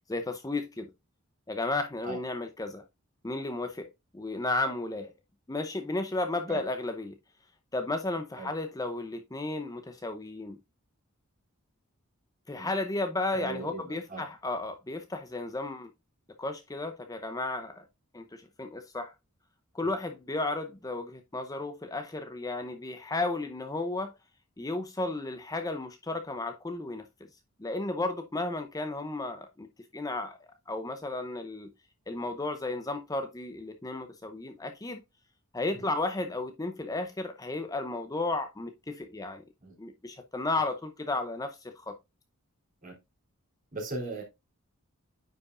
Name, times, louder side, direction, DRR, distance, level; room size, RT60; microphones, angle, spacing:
voice 1, 0.1-0.9 1.5-2.8 3.2-5.1 5.5-7.1 7.7-10.6 12.5-15.9 16.4-17.9 18.1-19.1 19.7-24.1 24.6-27.1 27.6-29.7 29.9-30.4 30.7-31.7 32.1-35.0 35.5-39.4 39.8-42.0, left 2 dB, 15° left, 0.6 m, -33 dB
voice 2, 13.3-14.2 19.8-20.0 35.7-35.9 39.6-39.7 42.8-43.0 43.7-44.2, right 3 dB, 40° right, 3.3 m, -38 dB
9.6 x 5.0 x 2.5 m
head